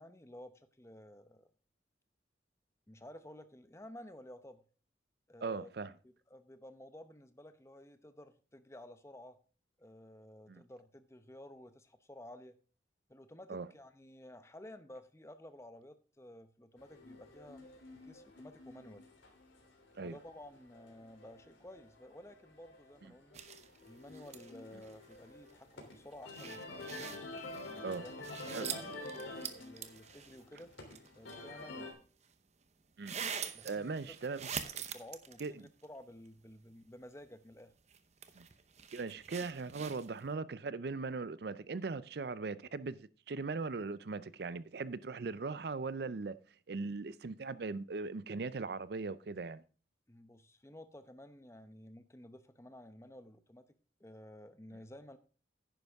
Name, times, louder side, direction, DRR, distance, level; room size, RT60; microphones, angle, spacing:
voice 1, 0.0-1.5 2.9-4.6 5.3-5.7 6.0-9.4 9.8-12.6 13.1-17.7 18.0-19.1 20.0-23.4 23.8-26.9 27.7-28.1 28.5-30.7 31.1-32.0 33.5-33.9 34.8-37.7 50.1-53.7 54.0-55.2, left 1 dB, 15° left, 0.8 m, -53 dB
voice 2, 5.4-5.9 10.5-10.6 13.5-13.7 20.0-20.2 27.8-28.0 28.5-28.7 33.0-33.1 33.6-34.4 35.4-35.5 38.4-38.5 38.9-46.4 46.7-49.6, right 4 dB, 55° right, 0.5 m, -39 dB
sound 1, 16.8-31.9, left 2 dB, 85° left, 3.2 m, -49 dB
harness handling, 23.3-25.2 25.5-25.6 25.9-31.6 32.2-32.3 33.0-35.9 36.3-36.4 37.9-40.3, right 7 dB, 35° right, 0.8 m, -45 dB
10.5 x 9.7 x 3.5 m
head